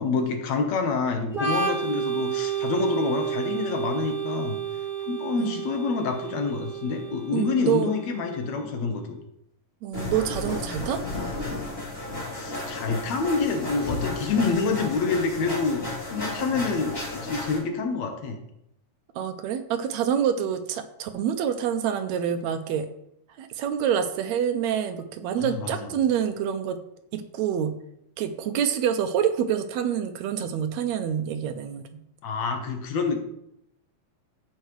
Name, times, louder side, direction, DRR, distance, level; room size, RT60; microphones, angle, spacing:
voice 1, 0.0-4.6 5.1-9.2 12.4-15.8 16.1-18.4 25.4-25.9 32.2-33.2, left 4 dB, 70° left, 5 dB, 2.3 m, -27 dB
Organ, 1.3-8.8, right 7 dB, 20° right, 2.1 m, -31 dB
voice 2, 7.3-7.9 9.8-11.0 19.2-22.9 23.4-26.8 27.1-27.7 28.2-31.9, right 9 dB, 80° right, 9 dB, 1.8 m, -27 dB
sound 1, 9.9-17.6, left 2 dB, 20° left, 3.0 m, -33 dB
14.5 x 5.5 x 3.2 m, 0.77 s
omnidirectional pair, 3.4 m